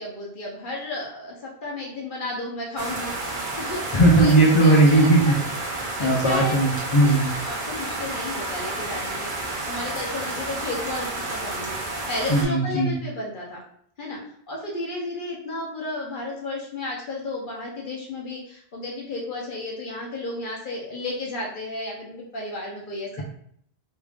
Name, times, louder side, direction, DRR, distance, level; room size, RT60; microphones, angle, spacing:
voice 1, 0.0-5.4 6.0-6.5 7.0-13.6 14.0-14.2 14.5-23.2, left 2 dB, 55° left, -3 dB, 1.0 m, -33 dB
sound 1, 2.8-12.4, right 2 dB, 55° right, 0.8 m, -31 dB
voice 2, 3.9-5.4 6.0-7.3 12.3-13.0, right 2 dB, 35° left, -3 dB, 0.7 m, -17 dB
3.2 x 2.5 x 3.4 m, 0.66 s
omnidirectional pair, 1.1 m